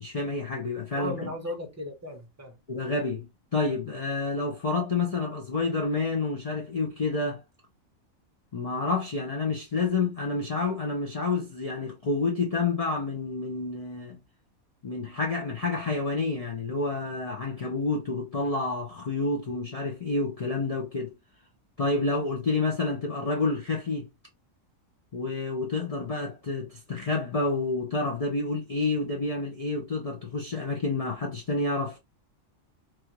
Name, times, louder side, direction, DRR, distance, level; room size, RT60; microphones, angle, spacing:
voice 1, 0.0-1.3 2.7-7.4 8.5-14.2 14.8-21.1 21.8-24.1 25.1-32.0, left 3 dB, 55° left, 0.4 m, -29 dB
voice 2, 0.9-2.6, equal, 20° right, 0.4 m, -36 dB
3.0 x 2.4 x 2.9 m
omnidirectional pair, 1.4 m